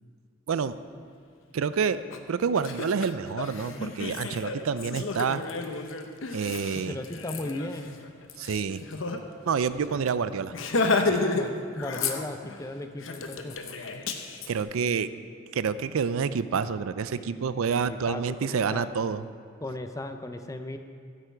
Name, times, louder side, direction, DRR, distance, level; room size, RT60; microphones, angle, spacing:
voice 1, 0.5-0.8 1.5-2.0 2.3-5.4 6.3-6.9 8.4-8.8 9.5-10.5 11.0-11.2 14.5-15.1 15.5-19.2, right 6 dB, 90° right, 14 dB, 0.4 m, -28 dB
Laughter, 2.1-2.2 2.6-9.2 9.5-9.6 9.9-10.1 10.5-11.5 11.8-12.6 13.0-14.5, left 3 dB, 70° left, 0.8 m, -31 dB
voice 2, 6.8-8.0 11.3-13.6 17.2-17.4 17.7-18.9 19.6-20.8, left 1 dB, 15° left, 7 dB, 0.6 m, -36 dB
15.0 x 8.4 x 4.6 m, 2.1 s
head